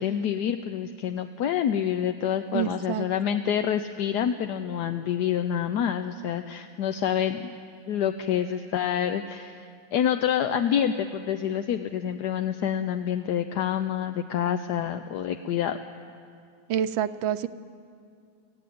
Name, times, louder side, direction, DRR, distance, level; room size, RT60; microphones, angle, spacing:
voice 1, 0.0-7.5 7.9-15.8, left 9 dB, 65° left, 8 dB, 1.2 m, -27 dB
voice 2, 2.5-3.1 16.7-17.5, right 10 dB, 85° right, 11 dB, 1.5 m, -27 dB
24.0 x 16.0 x 9.3 m, 2.4 s
omnidirectional pair, 2.1 m